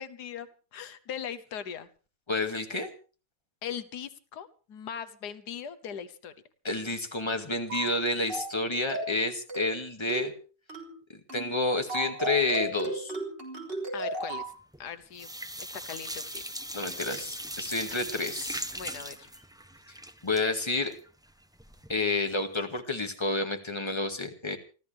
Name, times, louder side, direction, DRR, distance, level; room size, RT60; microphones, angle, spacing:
voice 1, 0.0-1.9 3.6-6.3 13.9-14.4 14.8-15.3 15.6-16.4 18.7-19.3, left 8 dB, 90° left, 13 dB, 1.6 m, -40 dB
voice 2, 2.3-2.9 6.6-10.3 11.1-13.1 16.7-18.7 19.9-20.0 20.2-20.9 21.9-24.6, left 2 dB, 15° left, 5 dB, 2.1 m, -30 dB
sound 1, 7.7-8.0 8.3-8.6 8.9-9.2 9.5-9.8 10.1-10.4 10.7-11.0 11.3-11.5 11.9-14.5, right 1 dB, 35° right, 3.8 m, -35 dB
sound 2, 14.5-14.9 15.1-22.0 22.3-22.4 22.8-22.9, right 1 dB, 5° right, 0.5 m, -39 dB
29.0 x 13.0 x 3.5 m, 0.37 s
omnidirectional pair, 1.7 m